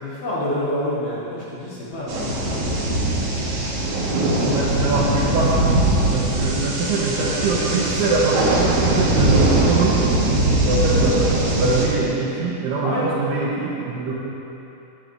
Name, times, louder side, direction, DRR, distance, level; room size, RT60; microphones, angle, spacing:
voice 1, 0.0-2.9 12.8-13.0 14.1-14.2, left 1 dB, 60° left, -8 dB, 2.1 m, -28 dB
sound 1, 2.1-11.9, right 1 dB, 60° right, 2.0 m, -20 dB
voice 2, 4.5-10.0 10.6-14.1, right 3 dB, 80° right, -5 dB, 2.7 m, -23 dB
13.0 x 8.8 x 3.2 m, 3.0 s
omnidirectional pair, 5.0 m